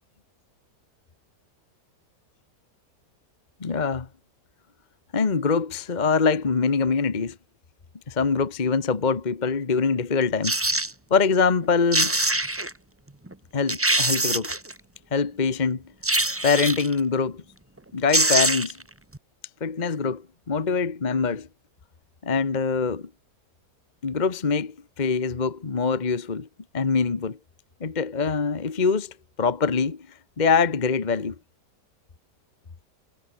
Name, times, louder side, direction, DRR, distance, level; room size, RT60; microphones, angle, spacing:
voice 1, 3.6-4.1 5.1-7.4 8.1-10.6 11.1-12.1 13.5-14.5 15.1-15.8 16.4-17.4 17.9-18.8 19.6-21.5 22.2-23.1 24.0-26.5 26.7-27.4 27.8-30.1 30.4-31.3, left 5 dB, 30° left, 1.2 m, -24 dB
sound 1, 10.4-10.9 11.6-11.7 11.9-12.7 13.3-13.4 13.7-14.7 16.0-16.9 17.8-17.9 18.1-18.8 19.1-19.2, right 1 dB, 10° right, 1.0 m, -23 dB
omnidirectional pair, 1.8 m